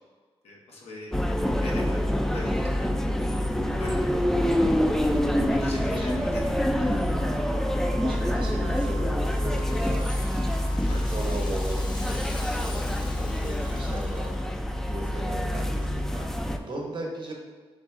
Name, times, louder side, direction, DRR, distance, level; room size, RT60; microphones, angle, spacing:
voice 1, 0.4-1.1 1.5-2.0 2.3-2.9 3.2-3.4 3.8-4.3 5.6-6.3 6.5-6.6 10.9-11.0, left 2 dB, 85° left, -3 dB, 0.9 m, -41 dB
sound 1, 1.1-16.6, left 1 dB, 5° left, 0.3 m, -26 dB
voice 2, 5.0-6.1 6.7-7.5 8.0-17.3, right 1 dB, 50° right, 0 dB, 1.0 m, -38 dB
Wind instrument woodwind instrument, 7.1-10.8, right 5 dB, 75° right, 0.5 m, -46 dB
Rattle (instrument), 8.4-14.6, left 2 dB, 45° left, 0.7 m, -46 dB
3.8 x 3.0 x 3.6 m, 1.5 s
cardioid pair, 70°, 10 cm